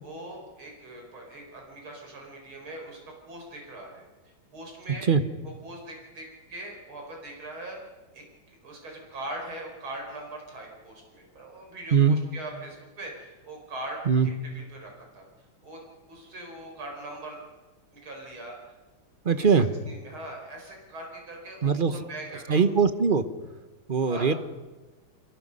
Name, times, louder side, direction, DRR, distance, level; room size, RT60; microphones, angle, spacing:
voice 1, 0.0-4.1 4.5-5.1 5.6-7.8 8.1-15.2 15.6-15.8 16.1-17.4 17.9-18.6 19.3-22.7 24.0-24.3, right 1 dB, 90° right, 1 dB, 5.7 m, -41 dB
voice 2, 19.2-19.7 21.6-21.9 22.5-23.2 23.9-24.3, right 6 dB, 35° right, 11 dB, 1.0 m, -21 dB
29.5 x 22.5 x 5.5 m, 1.2 s
omnidirectional pair, 2.2 m